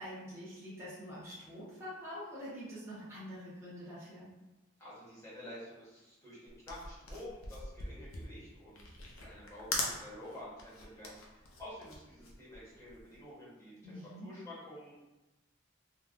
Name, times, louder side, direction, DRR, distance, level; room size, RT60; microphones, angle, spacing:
voice 1, 0.0-4.3 13.8-14.3, equal, 10° right, -11 dB, 0.7 m, -45 dB
voice 2, 4.8-8.8 9.1-13.9 14.2-14.9, left 1 dB, 15° left, -9 dB, 0.9 m, -50 dB
sound 1, 6.5-13.2, left 2 dB, 70° left, 0.6 m, -41 dB
3.4 x 2.2 x 2.4 m, 1.1 s
head